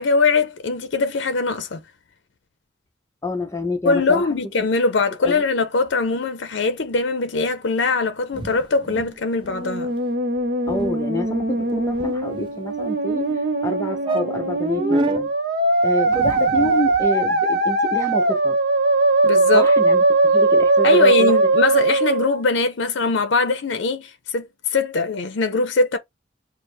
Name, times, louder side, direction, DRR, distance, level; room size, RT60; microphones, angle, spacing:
voice 1, 0.0-1.8 3.9-9.9 19.2-19.7 20.8-26.0, left 3 dB, 75° left, 0.6 m, -21 dB
voice 2, 3.2-4.3 5.2-5.5 10.7-13.3 13.6-15.3 15.8-18.6 19.5-21.4, left 1 dB, 15° left, 0.7 m, -28 dB
sound 1, 8.3-9.2 9.4-9.6 9.9-10.1 10.4-10.5 10.7-10.9 11.5-12.6 13.3-13.4 13.7-13.8 14.0-15.2 16.1-17.1, right 2 dB, 25° right, 0.4 m, -28 dB
Musical instrument, 9.4-22.4, right 2 dB, 55° right, 0.9 m, -20 dB
4.5 x 2.1 x 3.3 m
head